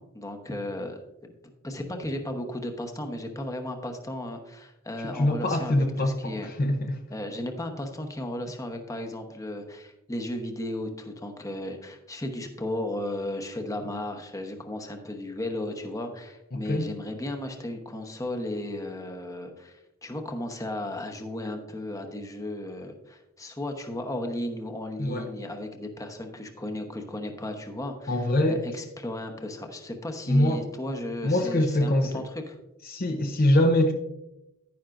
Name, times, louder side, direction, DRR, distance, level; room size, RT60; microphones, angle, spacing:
voice 1, 0.0-1.3 1.6-6.5 7.1-32.6, left 1 dB, 15° left, 5 dB, 1.0 m, -35 dB
voice 2, 5.1-6.3 6.6-7.0 16.5-16.9 25.0-25.3 28.1-28.6 30.3-30.6 31.2-32.2 32.9-33.9, left 1 dB, 45° left, 5 dB, 0.8 m, -23 dB
10.5 x 10.0 x 2.5 m, 0.91 s
head